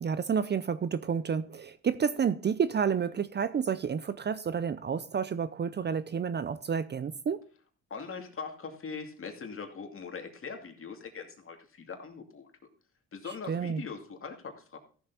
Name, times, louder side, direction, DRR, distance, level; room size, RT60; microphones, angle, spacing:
voice 1, 0.0-7.4 13.5-13.8, right 7 dB, 35° right, 0.6 m, -30 dB
voice 2, 7.9-12.5 13.1-14.8, left 5 dB, 45° left, 2.4 m, -41 dB
14.5 x 7.0 x 4.1 m
cardioid pair, 90°, 30 cm